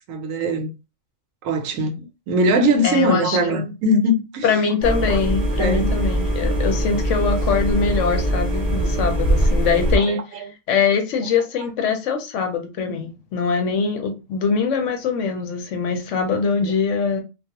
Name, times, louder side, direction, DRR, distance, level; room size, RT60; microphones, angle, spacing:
voice 1, 0.1-0.7 1.4-4.6 5.1-5.2 5.6-5.9 10.1-10.5 16.6-16.7, equal, 75° right, 1.0 m, -21 dB
voice 2, 2.8-3.7 4.4-17.2, left 5 dB, 70° left, 0.9 m, -23 dB
sound 1, 4.8-10.0, right 1 dB, 40° right, 0.6 m, -21 dB
2.3 x 2.2 x 2.8 m
omnidirectional pair, 1.4 m